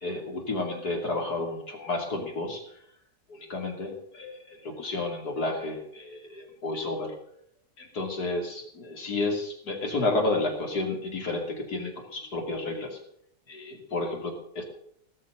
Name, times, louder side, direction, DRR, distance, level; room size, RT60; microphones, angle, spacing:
voice 1, 0.0-2.6 3.3-7.1 7.8-13.0 13.5-14.6, left 2 dB, 70° left, 2 dB, 3.3 m, -31 dB
18.5 x 6.7 x 7.8 m, 0.68 s
omnidirectional pair, 1.7 m